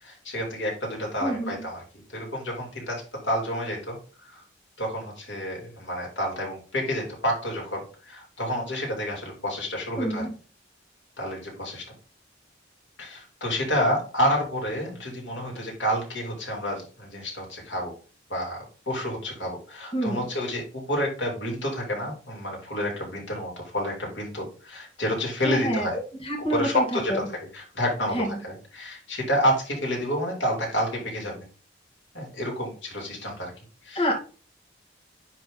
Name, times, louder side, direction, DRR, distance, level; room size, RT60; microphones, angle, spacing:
voice 1, 0.0-1.8 2.1-4.4 4.8-10.2 11.2-11.8 13.0-17.9 18.3-18.6 18.9-25.9 26.5-31.4 32.1-33.5 33.8-34.0, equal, 70° left, -1 dB, 3.4 m, -29 dB
voice 2, 1.2-1.7 10.0-10.3 19.9-20.3 25.4-27.3 28.1-28.4 33.9-34.1, equal, 30° left, 0 dB, 2.2 m, -28 dB
10.0 x 4.0 x 3.9 m, 0.37 s
head